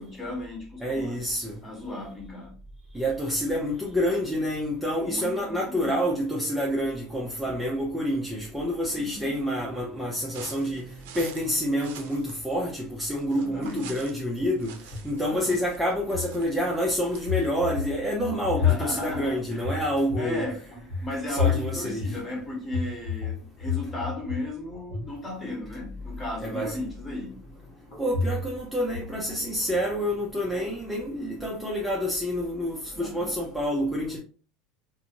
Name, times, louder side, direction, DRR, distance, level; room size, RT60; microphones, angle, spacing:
voice 1, 0.0-1.2 1.6-2.6 5.0-6.0 8.9-9.3 13.3-13.9 15.3-15.6 18.6-19.8 20.1-20.6 21.0-27.3 32.9-33.4, left 1 dB, 20° left, 1.1 m, -35 dB
voice 2, 0.8-1.5 2.9-10.9 11.1-14.7 15.0-20.4 21.3-22.1 26.4-26.8 28.0-34.2, equal, ahead, 0.5 m, -28 dB
sound 1, 10.3-17.5, right 8 dB, 85° right, 0.5 m, -47 dB
sound 2, 14.6-15.6 16.0-16.9 17.3-24.5 24.7-25.2 27.9-28.7 28.9-29.9 33.0-33.3 33.6-33.7, left 7 dB, 75° left, 1.4 m, -31 dB
2.6 x 2.5 x 2.8 m
supercardioid pair, 130°, 0 cm